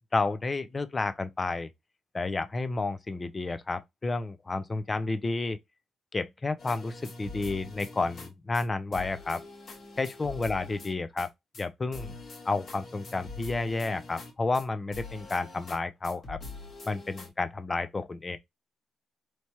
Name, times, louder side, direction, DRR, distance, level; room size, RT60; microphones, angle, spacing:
voice 1, 0.1-1.7 2.1-5.6 6.1-9.4 10.0-11.3 11.6-12.1 12.5-16.4 16.9-18.4, left 3 dB, 20° left, 0.4 m, -31 dB
sound 1, 6.6-8.3 8.5-8.7 8.9-11.3 11.5-11.7 11.9-14.7 14.9-15.8 16.0-17.3, left 3 dB, 45° left, 1.4 m, -44 dB
4.5 x 3.1 x 2.8 m
cardioid pair, 165°, 0 cm